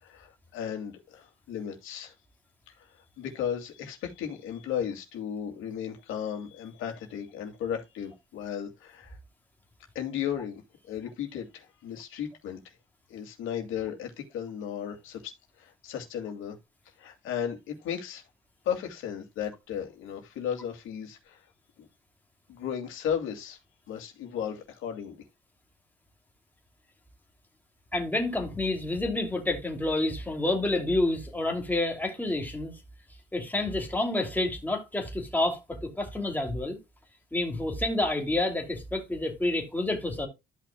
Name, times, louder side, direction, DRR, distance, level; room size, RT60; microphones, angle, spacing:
voice 1, 0.0-2.1 2.7-9.2 9.9-12.6 13.1-15.3 15.6-16.6 17.0-18.2 18.6-21.4 21.8-21.9 22.5-23.6 23.9-25.2, left 8 dB, 90° left, 2.5 m, -35 dB
voice 2, 27.9-32.7 33.3-36.8 37.3-40.3, left 2 dB, 10° left, 2.7 m, -29 dB
13.5 x 5.9 x 2.3 m
cardioid pair, 90°, 20 cm